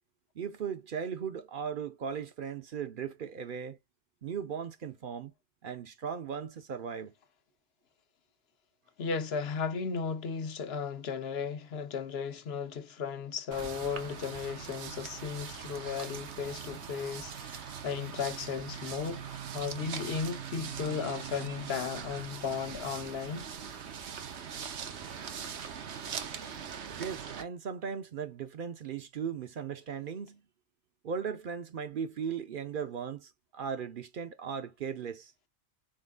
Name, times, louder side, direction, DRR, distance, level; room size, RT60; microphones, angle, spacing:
voice 1, 0.4-3.8 4.2-5.3 5.6-7.1 27.0-30.4 31.0-35.3, right 7 dB, 60° right, 0.7 m, -37 dB
voice 2, 9.0-23.5, left 6 dB, 70° left, 1.0 m, -35 dB
sound 1, 13.5-27.4, right 7 dB, 80° right, 1.1 m, -41 dB
4.3 x 3.8 x 2.3 m
omnidirectional pair, 1.1 m